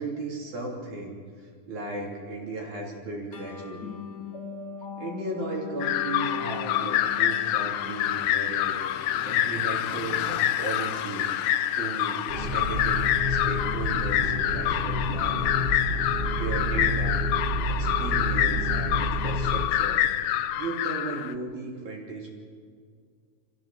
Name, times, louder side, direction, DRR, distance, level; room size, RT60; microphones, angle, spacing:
voice 1, 0.0-3.9 5.0-11.3 11.8-15.5 16.4-17.2 17.7-20.0 20.6-22.4, right 2 dB, 70° right, -1 dB, 4.6 m, -36 dB
sound 1, 3.3-10.2, left 7 dB, 45° left, 1.6 m, -40 dB
sound 2, 5.8-21.3, left 12 dB, 75° left, 1.8 m, -27 dB
sound 3, 12.3-19.7, equal, 20° right, 1.5 m, -29 dB
25.5 x 15.5 x 7.5 m, 2.1 s
omnidirectional pair, 3.5 m